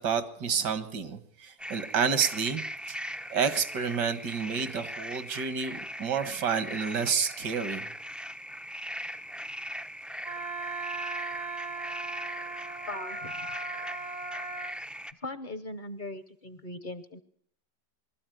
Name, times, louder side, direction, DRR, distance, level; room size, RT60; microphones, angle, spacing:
voice 1, 0.0-2.6 2.9-3.0 3.3-7.8, right 6 dB, 70° right, 11 dB, 2.1 m, -29 dB
sound 1, 1.6-15.1, equal, ahead, 0.3 m, -40 dB
Wind instrument woodwind instrument, 10.2-14.8, right 3 dB, 30° right, 0.7 m, -38 dB
voice 2, 12.9-13.5 15.2-17.2, left 1 dB, 35° left, 13 dB, 0.9 m, -39 dB
23.0 x 13.5 x 9.2 m, 0.65 s
omnidirectional pair, 1.9 m